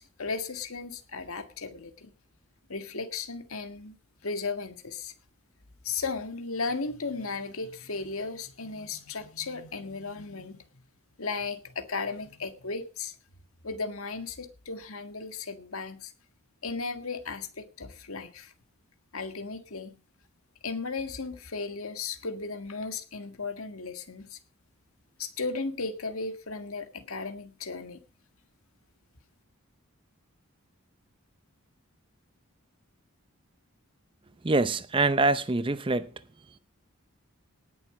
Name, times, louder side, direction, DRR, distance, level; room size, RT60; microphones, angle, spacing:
voice 1, 0.0-2.1 2.7-4.0 4.2-5.1 5.8-10.6 11.2-13.2 13.6-16.1 16.6-18.5 19.1-20.0 20.6-24.4 25.2-28.0, left 4 dB, 75° left, 1.7 m, -35 dB
voice 2, 34.4-36.1, right 3 dB, 25° right, 0.6 m, -25 dB
19.0 x 7.0 x 4.9 m
head